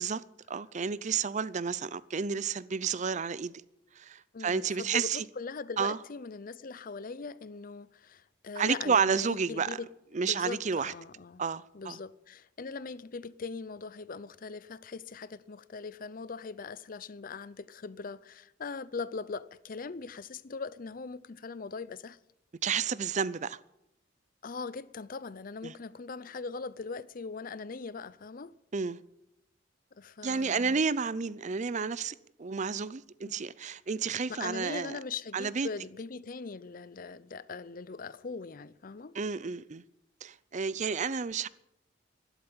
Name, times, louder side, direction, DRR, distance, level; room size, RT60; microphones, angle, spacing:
voice 1, 0.0-3.5 4.0-5.2 5.8-6.0 8.6-9.8 10.1-10.9 11.4-12.0 22.6-23.6 25.6-25.7 28.7-29.0 30.2-35.0 35.3-35.7 39.1-39.8 40.2-41.5, right 5 dB, 40° right, 0.5 m, -31 dB
voice 2, 4.3-9.9 10.2-11.4 11.7-22.2 24.4-28.5 30.0-30.8 34.3-39.1, left 4 dB, 45° left, 0.5 m, -40 dB
12.5 x 11.5 x 8.8 m
head